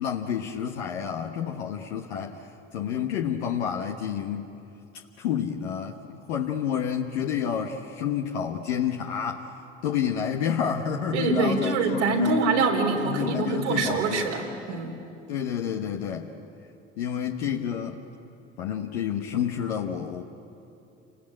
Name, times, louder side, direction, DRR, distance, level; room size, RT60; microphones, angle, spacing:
voice 1, 0.0-2.5 2.7-4.5 5.2-9.4 9.8-12.3 13.0-14.3 15.3-16.3 17.0-18.0 18.6-20.2, left 8 dB, 75° left, 1 dB, 1.4 m, -29 dB
voice 2, 11.1-14.9, right 3 dB, 85° right, 1 dB, 3.8 m, -25 dB
29.0 x 20.0 x 8.7 m, 2.7 s
hypercardioid pair, 60°, 34 cm